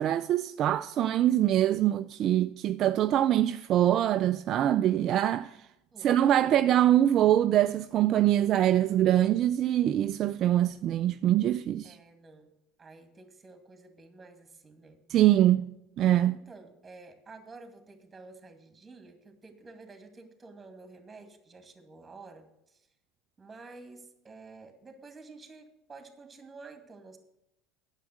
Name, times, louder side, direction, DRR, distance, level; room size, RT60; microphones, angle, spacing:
voice 1, 0.0-5.6 6.0-12.0 15.1-15.7 16.0-16.4, right 12 dB, 50° right, 0.4 m, -24 dB
voice 2, 5.9-6.6 11.8-12.5 12.8-15.0 16.2-22.8 23.4-27.2, right 3 dB, 20° right, 2.2 m, -50 dB
9.2 x 7.3 x 7.8 m
hypercardioid pair, 80°, 0 cm